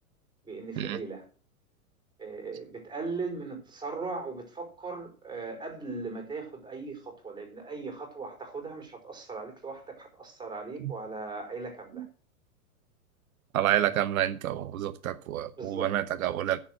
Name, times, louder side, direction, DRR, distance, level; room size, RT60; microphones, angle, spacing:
voice 1, 0.4-1.2 2.2-12.0 15.5-15.9, right 4 dB, 10° right, 4.8 m, -38 dB
voice 2, 13.5-16.6, right 12 dB, 70° right, 1.2 m, -28 dB
10.5 x 7.4 x 7.8 m
hypercardioid pair, 135°, 43 cm